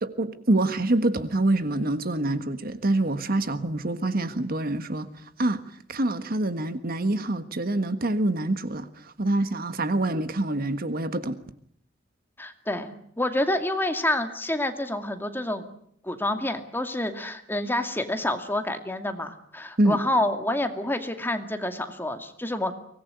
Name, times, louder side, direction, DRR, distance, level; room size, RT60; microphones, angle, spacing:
voice 1, 0.0-5.1 5.4-5.6 5.9-11.4 19.8-20.0, right 2 dB, 50° right, 11 dB, 1.5 m, -26 dB
voice 2, 12.4-15.7 16.0-22.7, left 1 dB, 10° left, 6 dB, 2.3 m, -28 dB
24.0 x 19.5 x 9.5 m, 0.65 s
head